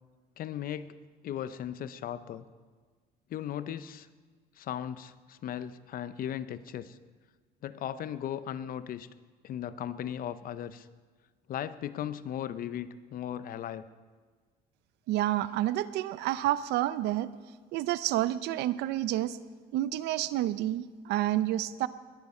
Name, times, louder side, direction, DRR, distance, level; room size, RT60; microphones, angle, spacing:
voice 1, 0.4-1.0 1.2-2.5 3.3-4.1 4.6-7.0 7.6-9.1 9.4-10.9 11.5-13.9, left 10 dB, 60° left, 14 dB, 0.7 m, -37 dB
voice 2, 15.1-17.3 17.7-19.4 19.7-21.9, right 14 dB, 85° right, 15 dB, 0.6 m, -29 dB
21.0 x 11.0 x 4.3 m, 1.5 s
cardioid pair, 110°, 17 cm